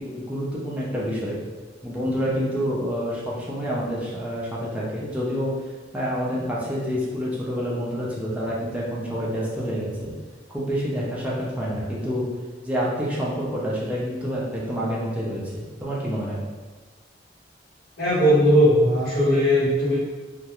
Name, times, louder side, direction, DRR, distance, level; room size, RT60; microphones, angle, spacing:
voice 1, 0.0-1.4 1.8-5.5 5.9-10.1 10.5-12.3 12.6-16.4, equal, 5° right, -6 dB, 0.4 m, -28 dB
voice 2, 18.0-20.0, equal, 55° left, -10 dB, 1.1 m, -18 dB
2.3 x 2.1 x 2.9 m, 1.3 s
head